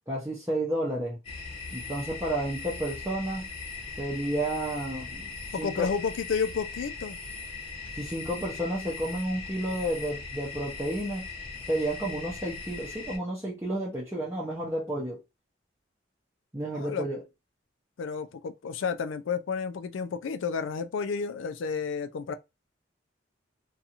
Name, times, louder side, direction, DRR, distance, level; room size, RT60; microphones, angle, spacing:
voice 1, 0.1-1.2 1.7-3.5 4.0-5.3 5.6-5.9 7.9-11.3 11.7-15.2 16.5-17.2, right 1 dB, 15° right, 0.6 m, -31 dB
sound 1, 1.2-13.2, left 4 dB, 30° left, 0.8 m, -40 dB
voice 2, 5.5-7.2 16.7-17.1 18.0-22.4, left 5 dB, 90° left, 0.4 m, -31 dB
2.6 x 2.3 x 2.8 m
head